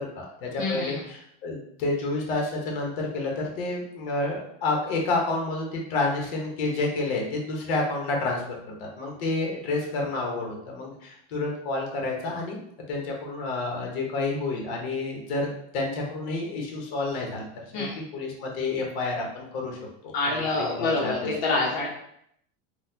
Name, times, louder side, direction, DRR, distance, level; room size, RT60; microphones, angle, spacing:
voice 1, 0.0-12.6 12.9-17.5 17.7-19.8 20.0-21.3, left 2 dB, 65° left, 0 dB, 1.1 m, -29 dB
voice 2, 0.6-0.9 17.7-17.9 20.1-21.9, left 3 dB, 85° left, -3 dB, 0.9 m, -26 dB
4.0 x 2.3 x 2.7 m, 0.72 s
supercardioid pair, 155°, 31 cm